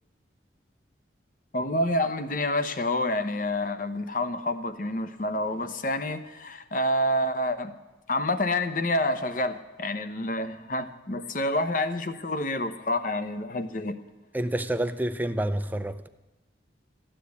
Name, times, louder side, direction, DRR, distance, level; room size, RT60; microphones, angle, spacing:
voice 1, 1.5-7.7 8.1-14.0, left 1 dB, 45° left, 0.9 m, -28 dB
voice 2, 14.3-16.1, right 1 dB, 10° right, 0.5 m, -28 dB
14.5 x 10.0 x 8.5 m
head